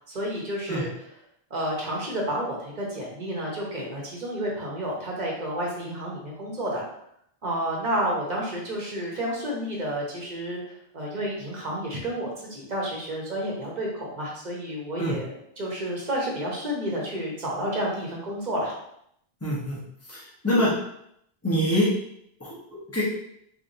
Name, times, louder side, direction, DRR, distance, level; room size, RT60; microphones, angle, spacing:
voice 1, 0.1-0.9 1.5-6.8 7.4-15.3 15.6-18.7, right 1 dB, 45° right, -3 dB, 1.0 m, -30 dB
voice 2, 19.4-19.8 20.1-20.7 21.4-21.9 22.4-22.5 22.9-23.0, equal, 15° left, -7 dB, 1.1 m, -24 dB
3.3 x 3.2 x 2.7 m, 0.73 s
omnidirectional pair, 1.0 m